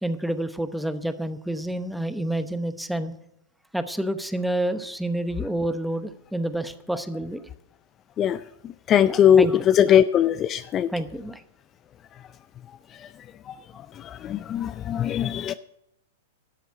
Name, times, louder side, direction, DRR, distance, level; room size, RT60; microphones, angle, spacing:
voice 1, 0.0-3.1 3.7-7.4 9.1-10.0 10.9-11.4, right 1 dB, ahead, 11 dB, 0.9 m, -29 dB
voice 2, 8.9-10.9 14.0-15.5, left 9 dB, 30° left, 13 dB, 0.4 m, -20 dB
12.5 x 6.9 x 8.1 m, 0.83 s
hypercardioid pair, 115°, 0 cm